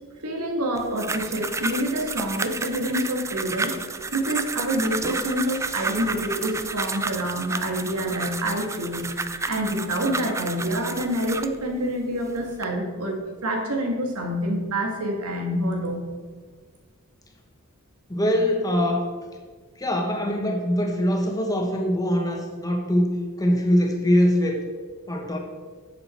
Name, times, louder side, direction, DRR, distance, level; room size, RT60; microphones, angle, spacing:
voice 1, 0.2-3.7 4.1-9.1 9.5-16.1, right 1 dB, 90° right, 1 dB, 2.0 m, -27 dB
sound 1, 0.7-11.6 12.2-12.6, right 3 dB, 15° right, 0.4 m, -31 dB
voice 2, 18.1-19.1 19.8-24.6 25.1-25.4, equal, 15° left, 2 dB, 1.4 m, -22 dB
10.5 x 7.7 x 4.5 m, 1.5 s
head